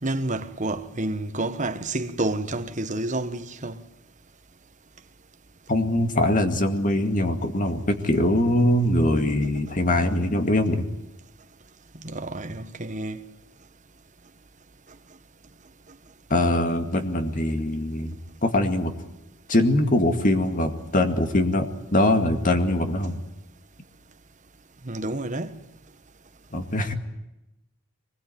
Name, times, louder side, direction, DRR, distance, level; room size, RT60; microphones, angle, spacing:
voice 1, 0.0-3.8 12.0-13.2 24.8-25.5, right 2 dB, 35° right, 1.3 m, -29 dB
voice 2, 5.7-10.9 16.3-18.2 18.4-18.9 19.5-23.2 26.5-26.9, left 1 dB, 40° left, 2.2 m, -22 dB
23.5 x 21.0 x 9.4 m
head